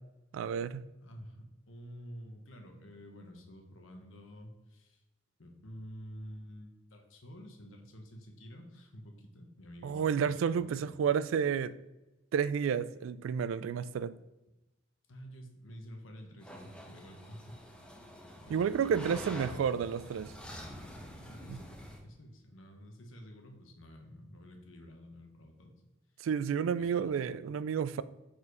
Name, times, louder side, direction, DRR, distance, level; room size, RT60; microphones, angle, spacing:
voice 1, 0.3-0.8 9.8-11.7 12.3-14.1 18.5-20.3 21.5-21.6 26.2-28.0, right 7 dB, 85° right, 16 dB, 0.3 m, -31 dB
voice 2, 1.0-5.0 5.4-11.1 15.1-17.8 18.4-19.7 21.2-25.7 26.2-26.3 26.8-27.4, equal, 85° left, 3 dB, 1.1 m, -50 dB
sound 1, 16.4-22.0, equal, 5° left, 0.9 m, -47 dB
4.7 x 4.3 x 4.8 m, 1.0 s
head